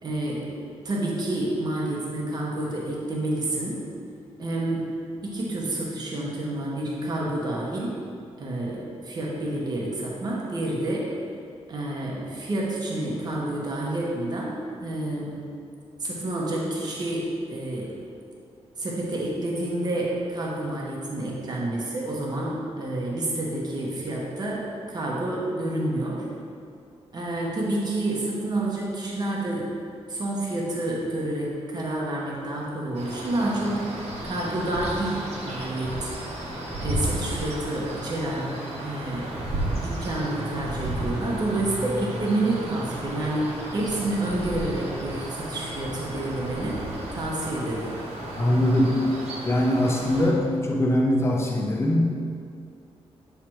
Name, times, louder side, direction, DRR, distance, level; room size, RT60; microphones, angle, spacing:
voice 1, 0.0-0.5 0.8-3.8 4.4-4.8 5.2-7.9 8.4-11.1 11.7-15.4 16.0-17.9 18.8-24.6 24.9-26.2 27.1-29.7 30.1-33.8 34.2-36.1 36.8-38.5 38.8-39.3 39.8-46.8 47.1-47.9, right 1 dB, 40° right, -4 dB, 1.0 m, -29 dB
sound 1, 32.9-50.3, right 1 dB, 70° right, 1.2 m, -33 dB
voice 2, 48.4-48.9 49.4-52.1, left 1 dB, 25° left, -1 dB, 0.6 m, -22 dB
7.4 x 3.3 x 4.5 m, 2.4 s
wide cardioid pair, 175°, 11 cm